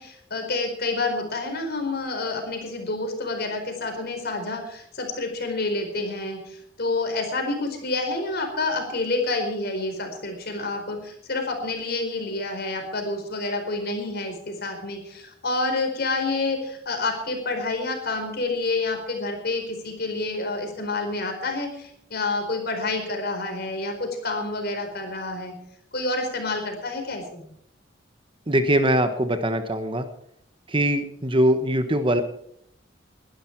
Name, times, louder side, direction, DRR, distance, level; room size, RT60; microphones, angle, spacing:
voice 1, 0.0-25.5 25.9-27.4, left 2 dB, 55° left, 4 dB, 4.5 m, -28 dB
voice 2, 28.5-30.1 30.7-32.2, right 1 dB, 25° right, 9 dB, 1.2 m, -22 dB
21.5 x 12.0 x 4.7 m, 0.68 s
head